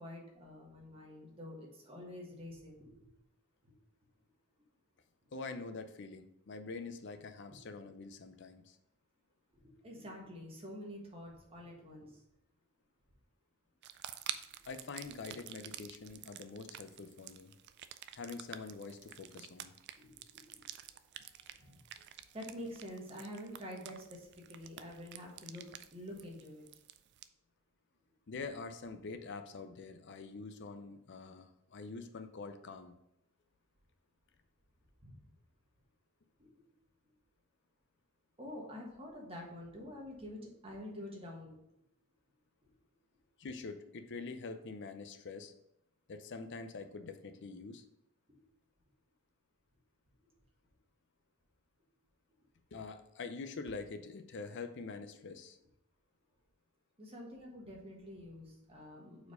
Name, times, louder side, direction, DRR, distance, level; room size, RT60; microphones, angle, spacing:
voice 1, 0.0-3.0 3.6-3.7 9.5-12.2 15.3-15.4 20.0-20.6 21.1-21.8 22.3-25.6 25.9-26.6 35.0-35.3 36.4-36.6 38.4-41.6 42.6-42.7 57.0-59.3, left 1 dB, 25° right, -1 dB, 1.4 m, -48 dB
voice 2, 5.3-8.8 14.7-17.5 18.1-19.7 28.3-33.0 43.4-45.5 46.1-47.8 52.7-55.6, left 4 dB, 55° left, 8 dB, 0.5 m, -45 dB
sound 1, 13.8-27.3, right 11 dB, 50° right, 0.3 m, -49 dB
4.7 x 4.4 x 5.0 m, 0.80 s
head